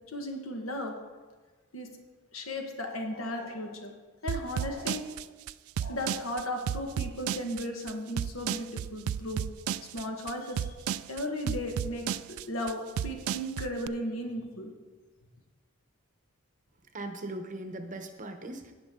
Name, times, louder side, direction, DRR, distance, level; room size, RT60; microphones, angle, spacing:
voice 1, 0.1-0.9 1.7-1.9 2.3-3.9 4.2-5.1 5.8-9.5 9.9-10.8 11.1-14.7, left 1 dB, 70° left, 3 dB, 1.4 m, -35 dB
sound 1, 4.3-13.9, right 9 dB, 75° right, 0.3 m, -33 dB
voice 2, 16.9-18.7, right 1 dB, 40° right, 6 dB, 0.9 m, -39 dB
17.0 x 6.0 x 3.7 m, 1.4 s
head